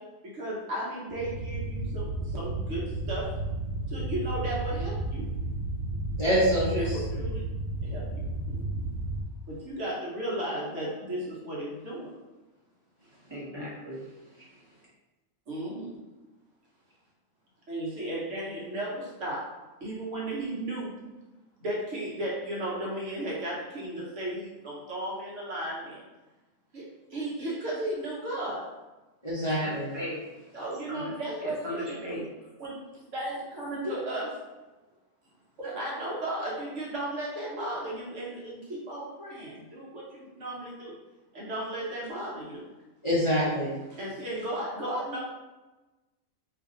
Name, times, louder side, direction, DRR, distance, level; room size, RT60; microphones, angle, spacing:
voice 1, 0.0-3.4 3.9-5.3 6.8-7.5 7.8-8.8 9.5-12.2 15.5-16.0 17.7-19.5 19.8-21.0 21.6-26.0 26.7-28.7 30.5-32.2 32.6-34.4 35.6-40.9 41.3-42.6 43.9-45.2, right 1 dB, 60° right, -5 dB, 1.1 m, -35 dB
sound 1, 1.1-9.2, right 2 dB, 85° right, 1.1 m, -33 dB
voice 2, 6.2-7.0 29.2-29.9 43.0-43.7, equal, 25° left, -9 dB, 0.8 m, -25 dB
voice 3, 13.3-14.0 29.6-30.2 30.9-31.1 31.4-32.2, equal, 20° right, -6 dB, 0.8 m, -37 dB
2.8 x 2.6 x 3.7 m, 1.1 s
omnidirectional pair, 1.5 m